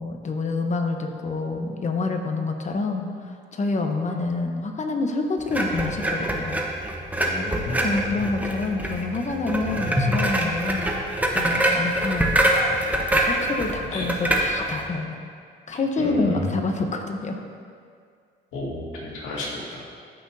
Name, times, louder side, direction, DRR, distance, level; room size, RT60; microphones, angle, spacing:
voice 1, 0.0-6.6 7.8-10.9 11.3-12.5 13.0-15.2 15.7-17.4, left 3 dB, 35° left, 4 dB, 1.0 m, -27 dB
sound 1, 5.5-14.9, right 1 dB, 10° right, 1.0 m, -24 dB
voice 2, 7.2-7.9 13.9-14.2 16.0-16.6 18.5-19.8, left 2 dB, 85° left, -5 dB, 2.2 m, -31 dB
14.0 x 6.3 x 2.8 m, 2.2 s
cardioid pair, 90°, 20 cm